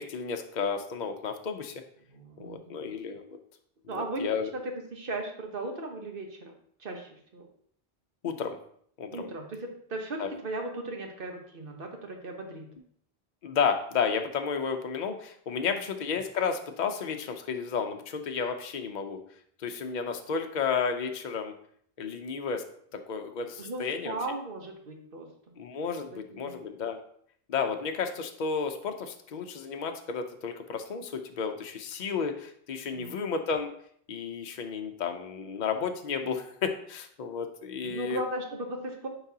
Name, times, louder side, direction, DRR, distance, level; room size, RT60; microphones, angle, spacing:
voice 1, 0.0-1.8 2.4-3.3 3.9-4.5 8.2-8.6 9.0-9.3 10.2-10.3 13.4-19.2 19.6-21.5 22.0-22.6 22.9-24.2 25.6-27.0 27.5-33.7 34.1-38.2, left 6 dB, 50° left, 5 dB, 0.7 m, -32 dB
voice 2, 2.1-2.8 3.9-4.2 4.5-4.6 4.9-6.5 6.8-7.5 9.1-12.7 15.7-15.8 23.6-25.3 26.1-26.5 32.9-33.2 37.8-39.1, right 2 dB, 60° right, 3 dB, 1.2 m, -37 dB
9.6 x 4.0 x 2.8 m, 0.63 s
omnidirectional pair, 1.1 m